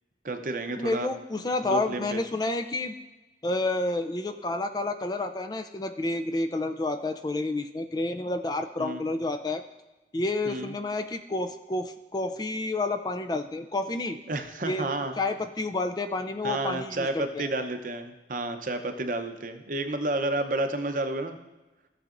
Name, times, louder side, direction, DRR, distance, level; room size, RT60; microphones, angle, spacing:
voice 1, 0.2-1.1 1.6-2.2 8.8-9.0 10.4-10.7 14.3-15.2 16.4-21.4, right 2 dB, 50° right, 7 dB, 0.7 m, -31 dB
voice 2, 0.8-2.9 3.4-9.6 10.1-14.2 14.6-14.9 15.2-17.5, left 2 dB, 25° left, 8 dB, 0.3 m, -30 dB
14.5 x 7.0 x 2.5 m, 1.1 s
head